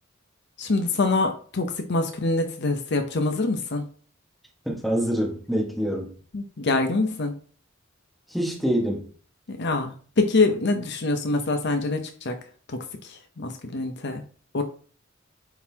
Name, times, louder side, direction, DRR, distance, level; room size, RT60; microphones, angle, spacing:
voice 1, 0.6-3.8 6.3-7.3 9.5-12.4 13.4-14.2 14.5-14.6, left 3 dB, 55° left, 0.7 m, -25 dB
voice 2, 4.6-6.1 8.3-9.1, equal, ahead, 1.4 m, -26 dB
8.7 x 4.0 x 2.8 m
head